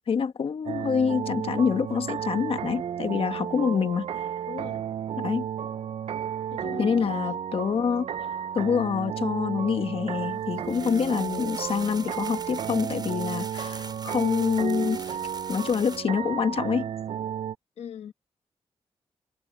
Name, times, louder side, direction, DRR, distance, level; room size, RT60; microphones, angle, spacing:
voice 1, 0.1-4.3 5.2-5.5 6.8-8.1 8.5-15.2 15.5-16.9, left 6 dB, 60° left, 1.4 m, -26 dB
sound 1, 0.7-17.6, right 9 dB, 70° right, 0.5 m, -33 dB
voice 2, 4.5-4.9 6.5-7.4 10.7-11.0 17.8-18.1, left 8 dB, 90° left, 1.2 m, -41 dB
sound 2, 10.2-16.0, right 4 dB, 40° right, 6.7 m, -43 dB
cardioid pair, 95°, 11 cm